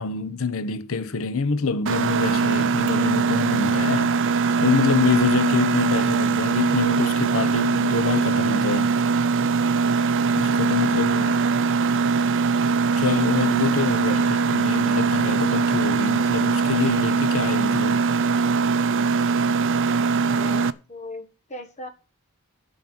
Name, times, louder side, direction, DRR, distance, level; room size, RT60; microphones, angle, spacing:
voice 1, 0.0-4.2 4.6-8.9 10.4-11.4 13.0-18.0, left 5 dB, 65° left, 0.8 m, -26 dB
Mechanisms, 1.9-20.7, right 5 dB, 60° right, 0.6 m, -21 dB
voice 2, 11.1-11.4 14.1-14.2 20.2-21.9, equal, 35° left, 1.7 m, -38 dB
12.0 x 5.4 x 7.9 m
head